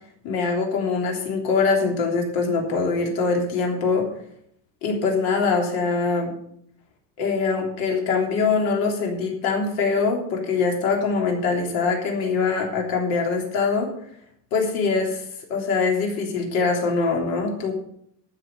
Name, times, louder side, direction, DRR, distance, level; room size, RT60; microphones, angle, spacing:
voice 1, 0.2-4.1 4.8-6.3 7.2-13.9 14.5-15.2 15.5-17.7, left 4 dB, 70° left, 1 dB, 3.4 m, -23 dB
12.5 x 6.2 x 7.1 m, 0.69 s
cardioid pair, 175°, 37 cm